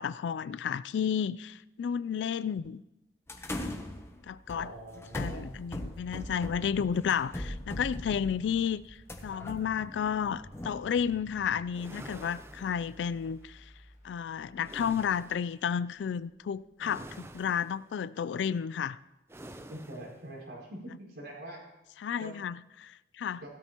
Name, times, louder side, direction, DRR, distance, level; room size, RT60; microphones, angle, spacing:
voice 1, 0.0-2.8 3.5-3.7 4.3-4.7 5.1-9.0 9.2-13.6 14.0-19.0 22.0-23.4, left 7 dB, 80° left, 0.3 m, -32 dB
sound 1, 3.3-11.6, left 1 dB, 15° left, 0.8 m, -40 dB
voice 2, 4.5-5.4 19.7-21.6 22.2-22.3 23.4-23.5, right 1 dB, 80° right, 4.7 m, -43 dB
sound 2, 6.5-18.8 20.1-20.2, equal, 45° left, 1.4 m, -59 dB
sound 3, 11.7-13.3 14.6-15.6 16.8-17.9 19.3-20.2, right 1 dB, 15° right, 0.5 m, -48 dB
16.0 x 12.5 x 3.0 m
head